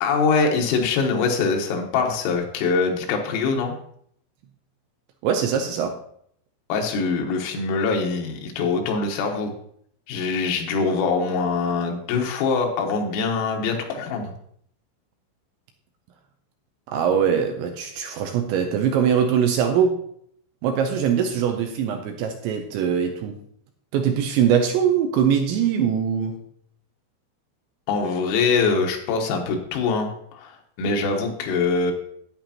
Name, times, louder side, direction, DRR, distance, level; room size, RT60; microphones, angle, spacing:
voice 1, 0.0-3.8 6.7-9.5 10.1-14.3 27.9-31.9, left 4 dB, 85° left, 2 dB, 3.9 m, -23 dB
voice 2, 5.2-6.0 16.9-20.0 20.6-23.4 23.9-26.4, right 8 dB, 80° right, 5 dB, 2.7 m, -22 dB
11.0 x 9.4 x 2.9 m, 0.68 s
omnidirectional pair, 5.8 m